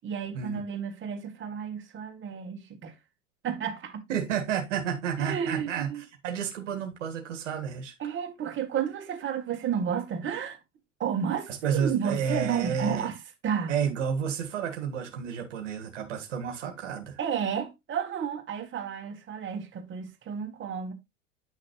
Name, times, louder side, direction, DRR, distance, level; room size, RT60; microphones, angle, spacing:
voice 1, 0.0-2.9 3.4-4.0 5.2-6.0 8.0-10.6 11.0-13.2 13.4-13.8 17.2-20.9, right 7 dB, 30° right, 2.1 m, -32 dB
voice 2, 4.1-5.9 6.2-7.9 11.5-13.1 13.7-17.2, right 7 dB, 70° right, 1.7 m, -31 dB
9.8 x 6.4 x 3.1 m
figure-of-eight pair, 80°, 38 cm